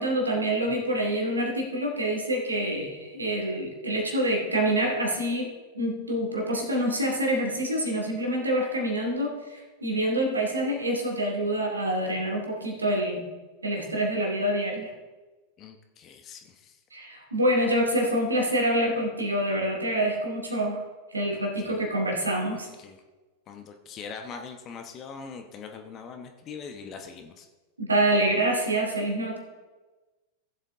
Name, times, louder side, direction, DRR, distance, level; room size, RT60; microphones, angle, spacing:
voice 1, 0.0-5.5 5.7-13.2 13.6-14.9 16.9-20.8 21.1-22.7 27.8-29.4, right 1 dB, 80° right, 1 dB, 2.4 m, -26 dB
voice 2, 15.6-16.8 21.6-21.8 22.8-23.0 23.5-27.5, left 5 dB, 30° left, 5 dB, 1.0 m, -42 dB
15.5 x 7.9 x 3.7 m, 1.2 s
figure-of-eight pair, 90°, 0 cm